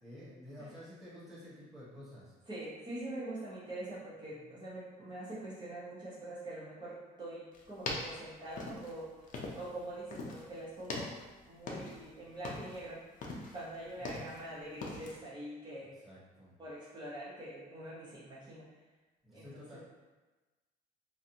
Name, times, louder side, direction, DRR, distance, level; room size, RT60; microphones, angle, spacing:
voice 1, 0.0-2.3 4.4-4.5 14.0-14.3 16.0-16.5 19.2-19.8, left 1 dB, ahead, -11 dB, 1.0 m, -51 dB
voice 2, 2.5-9.1 9.5-11.1 11.5-13.0 13.5-16.0 16.6-18.6 19.3-19.8, right 1 dB, 25° right, -9 dB, 0.9 m, -44 dB
sound 1, 7.5-9.8 10.1-10.5 10.8-12.1 12.3-12.8 13.2-14.5 14.8-15.2, left 2 dB, 50° left, 0.5 m, -41 dB
2.6 x 2.4 x 2.8 m, 1.2 s
cardioid pair, 110°, 17 cm